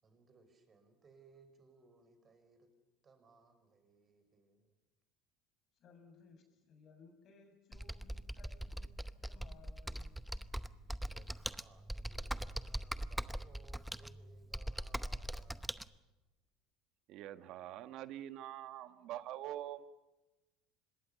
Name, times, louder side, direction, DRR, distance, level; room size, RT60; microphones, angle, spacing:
voice 1, 0.0-2.7 3.0-4.7 11.1-15.9, right 4 dB, 30° right, 5.4 m, -65 dB
voice 2, 5.8-8.9 9.2-10.2, left 4 dB, 50° left, 7.1 m, -62 dB
Computer keyboard, 7.7-15.9, right 1 dB, 5° right, 0.9 m, -41 dB
voice 3, 17.1-19.9, right 12 dB, 60° right, 1.4 m, -45 dB
25.5 x 21.0 x 6.9 m
supercardioid pair, 90°, 0 cm